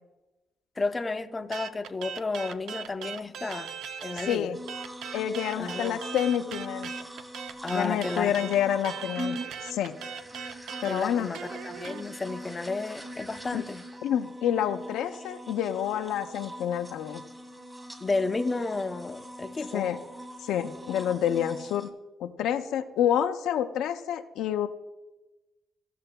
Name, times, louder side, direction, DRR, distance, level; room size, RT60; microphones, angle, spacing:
voice 1, 0.8-3.7 4.0-4.5 5.6-6.0 7.6-8.3 10.9-13.8 18.0-19.9, left 3 dB, 25° left, 8 dB, 0.6 m, -32 dB
sound 1, 1.5-4.4 4.7-12.0, right 7 dB, 80° right, 0.5 m, -39 dB
voice 2, 4.1-4.6 5.1-6.9 7.7-9.9 10.8-11.3 13.5-13.6 14.0-17.2 19.7-20.0 20.4-21.9 22.2-24.7, left 10 dB, 85° left, 7 dB, 0.5 m, -28 dB
sound 2, 4.5-21.9, equal, 15° right, 1.7 m, -42 dB
15.5 x 6.6 x 2.2 m, 1.0 s
cardioid pair, 90°, 0 cm